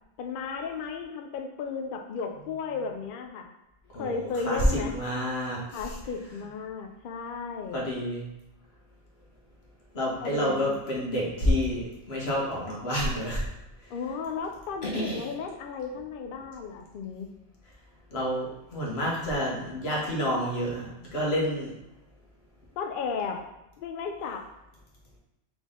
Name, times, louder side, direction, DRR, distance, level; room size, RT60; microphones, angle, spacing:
voice 1, 0.2-3.5 4.0-4.9 5.7-7.8 10.2-10.7 13.9-17.3 22.8-23.4 23.8-24.4, left 5 dB, 85° left, 4 dB, 0.4 m, -34 dB
voice 2, 3.9-6.0 7.7-8.2 9.9-13.5 13.8-13.9 14.8-15.3 18.1-21.7, equal, 50° left, -4 dB, 1.4 m, -29 dB
3.9 x 3.5 x 3.6 m, 0.92 s
omnidirectional pair, 1.4 m